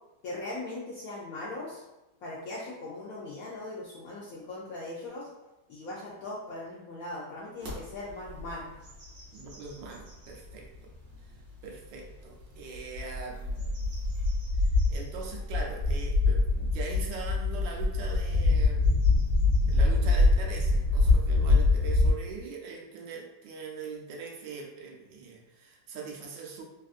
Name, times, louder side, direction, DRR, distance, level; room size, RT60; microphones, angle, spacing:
voice 1, 0.2-1.8 2.2-5.3 5.7-8.7, left 2 dB, 75° left, -5 dB, 0.8 m, -39 dB
sound 1, 7.6-7.7 8.3-8.5 8.8-10.3 10.9-11.0 12.8-22.1, left 3 dB, 60° right, 1.3 m, -25 dB
voice 2, 9.3-10.9 11.3-11.4 11.6-13.9 14.9-19.2 19.7-26.6, right 5 dB, 90° right, 0 dB, 1.3 m, -42 dB
3.3 x 2.4 x 2.4 m, 0.98 s
omnidirectional pair, 2.0 m